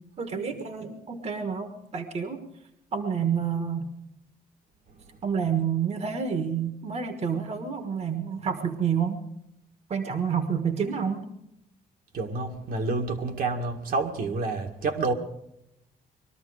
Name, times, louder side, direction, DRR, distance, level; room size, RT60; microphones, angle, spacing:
voice 1, 0.2-2.4 2.9-3.9 5.2-9.2 9.9-11.3, right 7 dB, 40° right, 1.5 m, -29 dB
voice 2, 12.1-15.1, right 3 dB, 65° right, 2.0 m, -28 dB
21.5 x 13.5 x 5.0 m
cardioid pair, 120°, 16 cm